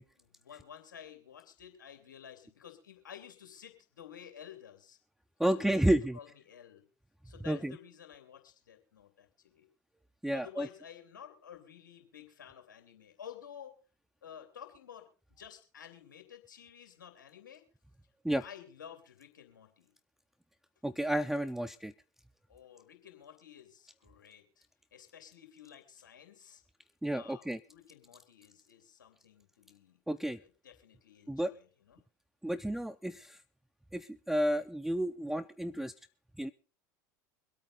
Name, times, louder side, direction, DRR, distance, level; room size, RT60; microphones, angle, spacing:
voice 1, 0.2-5.0 5.5-6.8 7.2-9.7 10.3-13.8 14.2-17.6 18.4-19.9 22.5-24.7 24.9-26.6 27.1-30.0 30.4-32.0, left 9 dB, 85° left, 5 dB, 3.0 m, -52 dB
voice 2, 5.4-6.2 7.5-7.7 10.2-10.7 18.2-18.4 20.8-21.9 27.0-27.6 30.1-30.4 31.3-31.5 32.4-33.4 33.9-35.9 36.4-36.5, right 1 dB, 5° right, 16 dB, 0.6 m, -31 dB
24.5 x 8.7 x 3.9 m, 0.35 s
hypercardioid pair, 80°, 10 cm